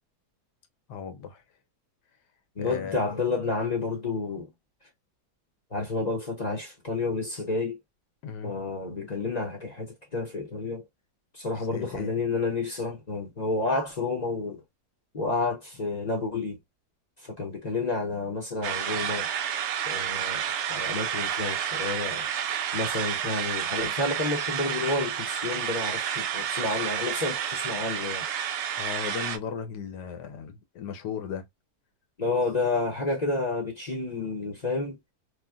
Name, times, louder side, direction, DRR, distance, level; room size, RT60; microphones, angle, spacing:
voice 1, 0.9-1.4 2.6-3.0 8.2-8.6 11.5-12.1 28.8-31.5, left 7 dB, 80° left, 1.3 m, -36 dB
voice 2, 2.6-4.5 5.7-7.8 8.4-10.8 11.3-14.6 15.1-16.6 17.2-19.3 19.9-20.4 20.7-22.3 22.7-28.3 32.2-35.0, left 3 dB, 35° left, 0.7 m, -30 dB
sound 1, 18.6-29.4, right 9 dB, 75° right, 0.6 m, -30 dB
3.1 x 2.5 x 2.3 m
omnidirectional pair, 1.8 m